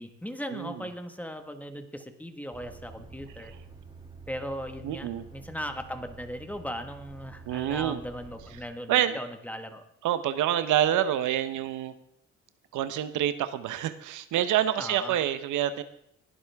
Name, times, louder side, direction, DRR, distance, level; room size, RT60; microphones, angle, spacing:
voice 1, 0.0-3.5 4.3-9.8 14.8-15.2, equal, 5° left, 7 dB, 1.5 m, -38 dB
Truck, 2.5-8.6, right 4 dB, 15° right, 2.5 m, -48 dB
voice 2, 4.8-5.3 7.5-8.0 8.9-9.2 10.0-11.9 12.7-15.8, right 11 dB, 85° right, 12 dB, 0.9 m, -27 dB
20.0 x 11.0 x 3.5 m, 0.74 s
cardioid pair, 90°, 30 cm